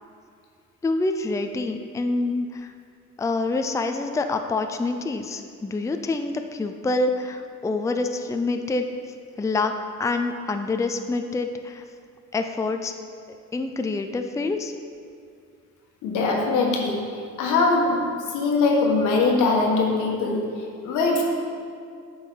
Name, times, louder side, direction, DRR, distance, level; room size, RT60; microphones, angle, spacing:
voice 1, 0.8-2.7 3.2-8.9 9.4-9.7 10.0-11.8 12.3-12.9 13.5-14.7, left 3 dB, 10° left, 6 dB, 0.4 m, -26 dB
voice 2, 16.0-17.0 17.4-18.0 18.3-20.4 20.8-21.2, left 3 dB, 90° left, 0 dB, 1.3 m, -21 dB
8.9 x 5.5 x 3.9 m, 2.3 s
cardioid pair, 90°, 30 cm